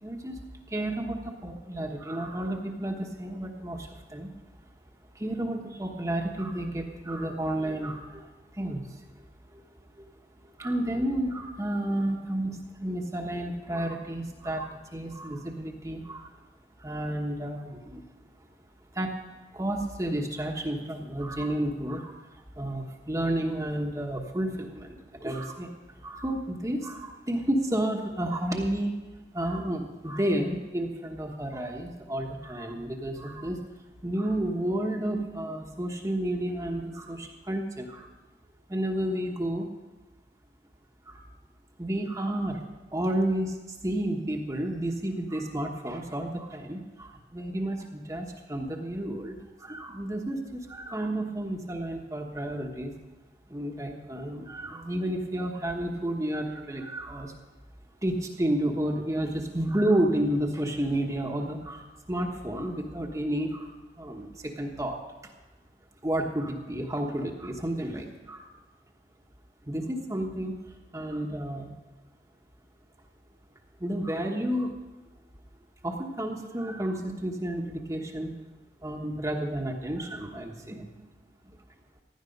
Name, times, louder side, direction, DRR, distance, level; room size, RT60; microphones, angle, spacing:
voice 1, 0.0-4.3 5.1-9.2 9.5-9.6 10.0-10.1 10.4-16.4 16.8-18.0 18.9-19.2 19.5-28.9 29.3-33.6 34.0-38.1 38.7-39.7 41.1-41.2 41.8-42.6 42.9-52.9 53.5-57.3 58.0-63.7 64.0-65.0 66.0-68.5 69.6-71.7 73.8-74.7 75.8-78.3 78.8-80.9, right 1 dB, 20° right, 1 dB, 1.2 m, -31 dB
16.0 x 11.5 x 5.3 m, 1.2 s
head